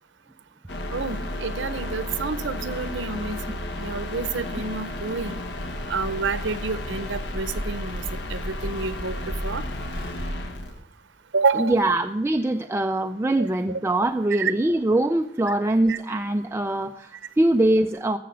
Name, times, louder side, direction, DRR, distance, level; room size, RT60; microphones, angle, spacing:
sound 1, 0.7-10.8, left 1 dB, 65° left, 1.1 m, -32 dB
voice 1, 0.9-5.4 5.9-8.0 8.3-9.6 11.3-11.8 13.4-13.8 14.4-14.5 15.9-16.0, right 4 dB, 85° right, 13 dB, 0.8 m, -28 dB
voice 2, 11.6-18.2, right 1 dB, 15° right, 6 dB, 0.4 m, -23 dB
15.5 x 6.7 x 6.7 m, 0.78 s
head